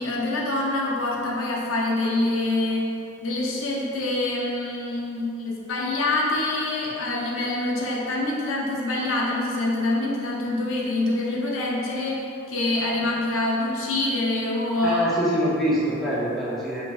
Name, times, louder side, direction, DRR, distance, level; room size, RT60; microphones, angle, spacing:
voice 1, 0.0-15.0, left 2 dB, 80° left, -3 dB, 0.5 m, -26 dB
voice 2, 14.8-16.9, equal, ahead, -8 dB, 0.5 m, -24 dB
3.8 x 2.9 x 2.3 m, 2.6 s
head